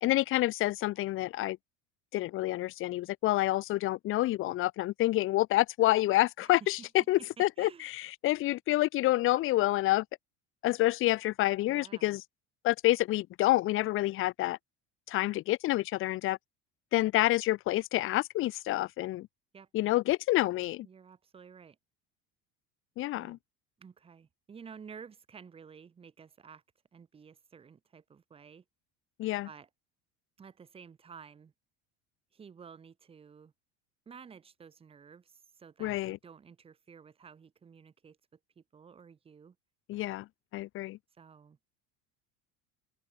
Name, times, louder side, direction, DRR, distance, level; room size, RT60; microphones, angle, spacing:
voice 1, 0.0-1.6 2.1-10.0 10.6-12.2 12.6-14.6 15.1-16.4 16.9-19.3 19.7-20.9 23.0-23.4 29.2-29.5 35.8-36.2 39.9-41.0, left 16 dB, 40° left, 1.3 m, -28 dB
voice 2, 7.4-7.9 11.7-12.2 19.5-19.7 20.8-21.8 23.1-23.4 23.8-26.6 26.9-28.6 29.4-29.7 30.4-31.5 32.3-33.5 34.1-38.2 38.6-39.6 41.1-41.6, right 6 dB, 20° right, 2.6 m, -52 dB
open air
cardioid pair, 175°, 32 cm